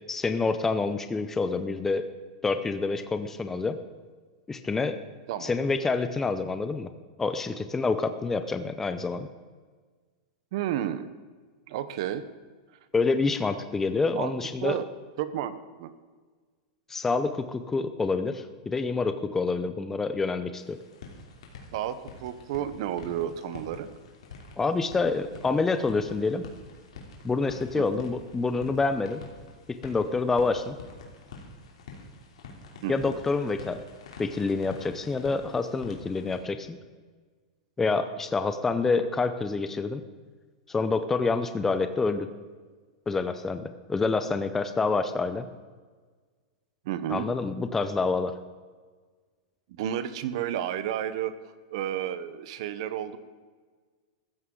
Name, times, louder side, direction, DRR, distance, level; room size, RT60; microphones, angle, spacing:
voice 1, 0.0-2.1 2.4-3.8 4.5-5.0 5.4-6.9 7.2-9.3 12.9-14.8 16.9-20.8 24.6-26.4 27.2-29.2 29.7-30.8 32.9-33.8 34.2-36.8 37.8-40.0 40.7-42.3 43.1-45.5 47.1-48.3, left 4 dB, 10° left, 9 dB, 0.6 m, -27 dB
voice 2, 10.5-11.1 11.7-12.2 14.1-14.3 14.6-14.9 15.2-15.9 21.7-23.9 27.8-28.0 32.8-33.2 46.8-47.3 49.8-51.4 51.7-53.2, right 11 dB, 60° right, 13 dB, 0.9 m, -31 dB
sound 1, 20.6-36.4, left 3 dB, 90° left, 3.2 m, -47 dB
15.5 x 13.5 x 3.8 m, 1.5 s
supercardioid pair, 150°, 3 cm